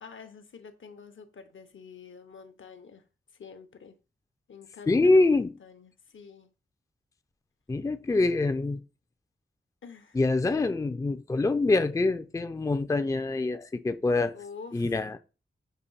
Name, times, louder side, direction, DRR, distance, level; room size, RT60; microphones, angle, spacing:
voice 1, 0.0-3.0 3.3-4.0 4.5-6.5 9.8-10.2 14.3-15.0, left 5 dB, 70° left, 0.8 m, -47 dB
voice 2, 4.9-5.5 7.7-8.8 10.1-14.4 14.7-15.2, left 2 dB, 15° left, 0.4 m, -25 dB
6.6 x 2.6 x 5.5 m
wide cardioid pair, 115°, 21 cm